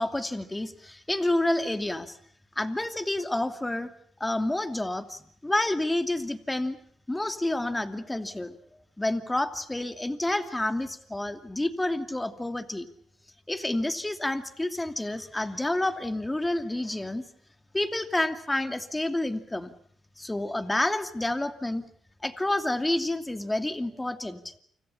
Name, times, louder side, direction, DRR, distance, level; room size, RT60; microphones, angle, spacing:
voice 1, 0.0-2.2 2.6-3.9 4.2-6.8 7.1-8.5 9.0-12.9 13.5-17.3 17.7-19.7 20.2-21.8 22.2-24.5, left 1 dB, 10° left, 8 dB, 2.7 m, -29 dB
29.0 x 26.5 x 5.8 m, 0.64 s
cardioid pair, 90°, 0 cm